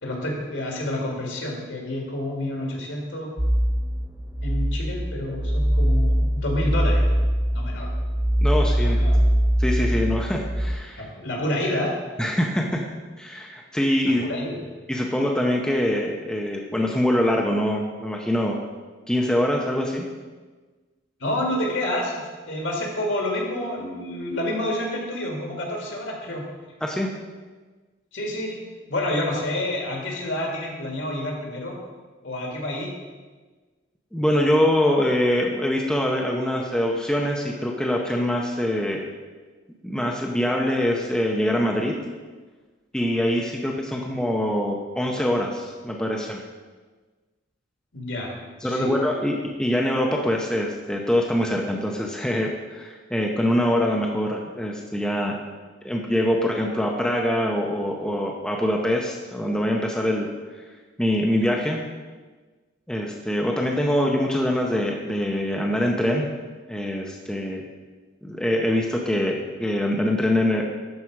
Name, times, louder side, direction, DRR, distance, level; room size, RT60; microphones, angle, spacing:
voice 1, 0.0-3.3 4.4-7.0 7.5-7.9 8.8-9.2 11.0-11.9 14.1-14.6 21.2-26.4 28.1-28.6 28.9-31.8 32.2-32.9 47.9-48.4 48.6-48.9 49.2-49.3, left 1 dB, 65° left, -1 dB, 2.0 m, -28 dB
sound 1, 3.4-10.7, equal, 25° right, 1.2 m, -22 dB
voice 2, 8.4-9.0 9.6-11.1 12.2-12.8 13.2-14.2 14.9-18.6 19.1-20.1 26.8-27.1 34.1-39.1 39.8-41.9 42.9-46.4 48.6-55.4 55.8-60.3 61.0-61.8 62.9-66.3 66.7-67.6 68.2-70.6, left 1 dB, 5° left, 0 dB, 0.6 m, -24 dB
12.0 x 4.9 x 4.7 m, 1.3 s
head